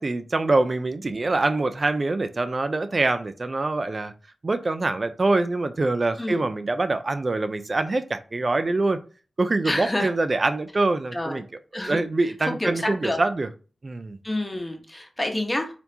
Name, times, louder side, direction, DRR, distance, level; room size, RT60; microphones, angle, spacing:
voice 1, 0.0-4.1 4.4-9.0 9.4-11.4 11.7-13.5 13.8-14.2, right 2 dB, 45° right, 0.4 m, -24 dB
voice 2, 9.6-10.1 11.1-11.4 11.7-12.1 12.4-13.2 14.2-15.7, left 1 dB, 20° left, 1.0 m, -28 dB
4.2 x 2.7 x 2.8 m
cardioid pair, 50°, 0 cm